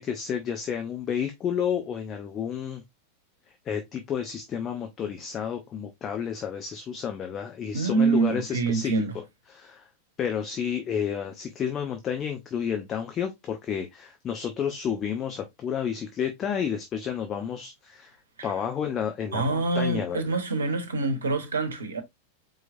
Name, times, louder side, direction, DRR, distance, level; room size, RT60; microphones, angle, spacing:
voice 1, 0.0-2.8 3.6-9.2 9.5-9.9 10.2-18.2 18.4-20.4, left 8 dB, 30° left, 0.8 m, -31 dB
voice 2, 7.7-9.2 18.4-18.5 19.3-22.0, right 3 dB, 70° right, 1.0 m, -25 dB
4.7 x 3.9 x 2.6 m
figure-of-eight pair, 90°, 0 cm